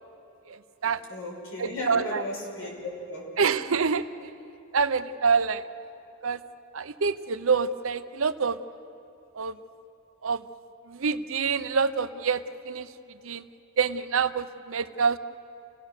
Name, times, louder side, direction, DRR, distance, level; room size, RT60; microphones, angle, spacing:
voice 1, 0.5-1.0 1.6-2.2 3.4-4.3 4.7-5.7 6.2-6.4 6.7-8.6 9.3-9.6 10.2-10.4 10.9-12.9 13.2-13.4 13.8-15.2, right 5 dB, 70° right, 12 dB, 0.7 m, -26 dB
voice 2, 1.1-3.4, left 1 dB, 70° left, -1 dB, 5.9 m, -36 dB
29.0 x 17.5 x 6.6 m, 2.9 s
head